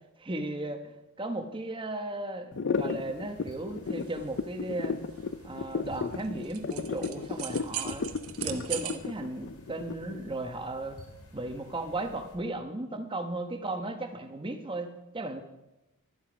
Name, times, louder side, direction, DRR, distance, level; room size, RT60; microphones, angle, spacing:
voice 1, 0.2-0.8 1.2-5.0 5.4-8.1 8.4-11.0 11.3-15.4, right 2 dB, 25° right, 6 dB, 1.1 m, -35 dB
sound 1, 2.5-10.3, left 5 dB, 55° left, 0.5 m, -33 dB
sound 2, 2.7-12.4, equal, 85° left, 2.8 m, -53 dB
sound 3, 3.8-9.0, right 10 dB, 75° right, 1.0 m, -40 dB
12.5 x 12.0 x 5.1 m, 0.97 s
head